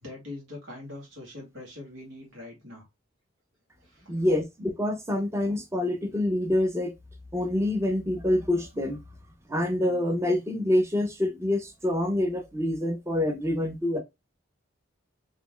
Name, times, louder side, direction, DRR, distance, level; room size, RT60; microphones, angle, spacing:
voice 1, 0.0-2.9 3.8-4.2, left 2 dB, 80° right, 1.8 m, -43 dB
voice 2, 4.1-6.9 7.3-9.0 9.5-14.0, left 1 dB, 15° right, 0.7 m, -26 dB
4.1 x 3.0 x 2.2 m
head